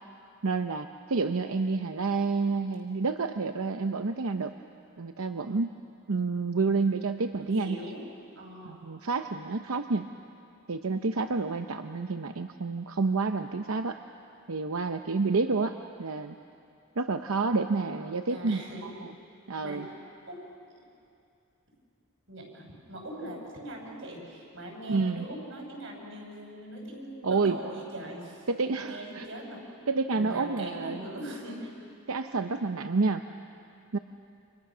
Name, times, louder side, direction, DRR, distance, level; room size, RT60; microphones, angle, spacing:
voice 1, 0.4-4.5 5.0-5.7 6.1-7.9 8.6-10.1 10.7-14.0 14.5-16.3 17.0-19.1 19.5-19.9 24.9-25.3 27.2-27.6 28.5-29.3 29.9-31.0 32.1-33.2 33.9-34.0, right 4 dB, 85° right, 7 dB, 0.8 m, -29 dB
voice 2, 7.3-8.1 8.4-8.8 18.3-18.9 19.6-19.9 20.3-20.4 22.3-28.4 28.8-29.6 30.1-31.7, right 1 dB, 65° right, 0 dB, 6.3 m, -41 dB
30.0 x 27.5 x 6.2 m, 2.5 s
head